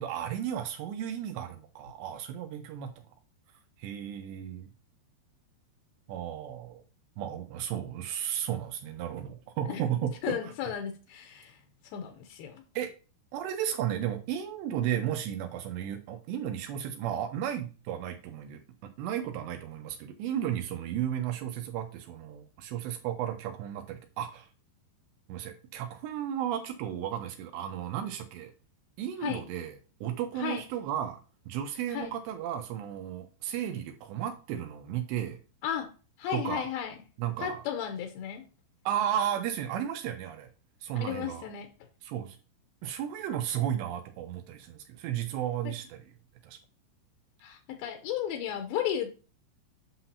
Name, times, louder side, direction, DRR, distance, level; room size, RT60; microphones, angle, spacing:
voice 1, 0.0-2.9 3.8-4.7 6.1-6.8 7.2-10.5 12.8-12.9 13.3-24.5 25.3-28.5 29.0-31.2 31.5-35.4 36.3-36.7 37.2-37.6 38.9-40.5 40.8-41.4 42.0-42.4 42.8-46.1 46.4-46.6, right 10 dB, 85° right, 6 dB, 2.9 m, -34 dB
voice 2, 10.2-11.5 11.9-12.6 29.2-29.4 30.4-30.6 31.9-32.1 35.6-35.9 36.2-36.9 37.4-38.4 41.0-41.7 47.4-49.1, left 9 dB, 80° left, 5 dB, 2.2 m, -34 dB
8.8 x 5.9 x 2.7 m, 0.35 s
omnidirectional pair, 5.1 m